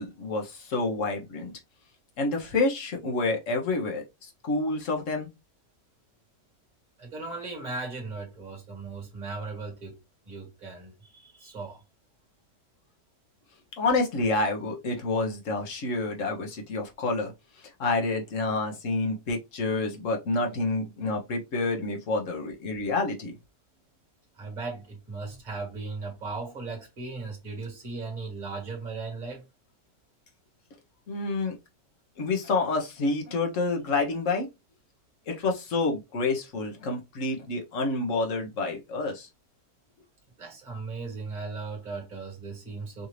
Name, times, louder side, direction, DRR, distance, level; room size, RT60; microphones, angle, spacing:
voice 1, 0.0-1.5 2.2-5.3 13.8-17.3 17.8-23.3 31.1-31.6 32.2-34.5 35.3-39.3, left 3 dB, 50° left, 1.3 m, -28 dB
voice 2, 7.0-10.0 10.2-11.8 24.4-29.4 40.4-43.1, right 3 dB, 25° right, 1.7 m, -37 dB
4.9 x 2.7 x 3.1 m
omnidirectional pair, 1.9 m